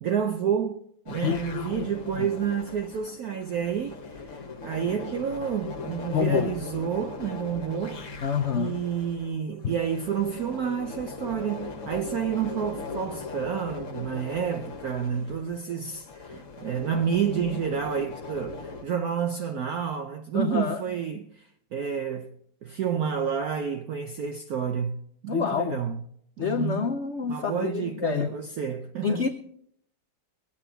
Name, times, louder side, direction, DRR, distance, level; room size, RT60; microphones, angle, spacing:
voice 1, 0.0-8.1 8.5-26.0 26.4-26.9 27.3-29.3, right 8 dB, 65° right, 1.0 m, -30 dB
sound 1, 1.1-18.8, left 4 dB, 45° left, 1.5 m, -39 dB
voice 2, 1.2-1.9 2.2-2.3 6.1-6.5 8.2-8.8 9.6-9.7 20.3-20.8 25.3-25.8 26.4-28.3 29.0-29.3, left 7 dB, 75° left, 0.6 m, -27 dB
21.0 x 8.6 x 4.4 m
omnidirectional pair, 2.1 m